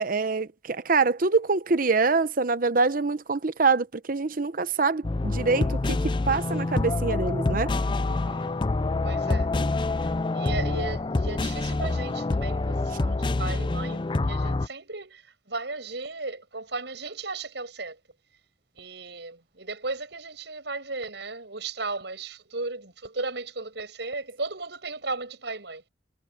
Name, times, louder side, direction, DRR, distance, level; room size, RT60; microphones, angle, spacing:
voice 1, 0.0-7.7, right 4 dB, 50° right, 0.9 m, -25 dB
sound 1, 5.0-14.7, left 2 dB, 25° left, 0.4 m, -26 dB
voice 2, 8.0-8.5 9.0-9.5 10.3-18.0 18.8-25.9, right 3 dB, 70° right, 7.0 m, -36 dB
head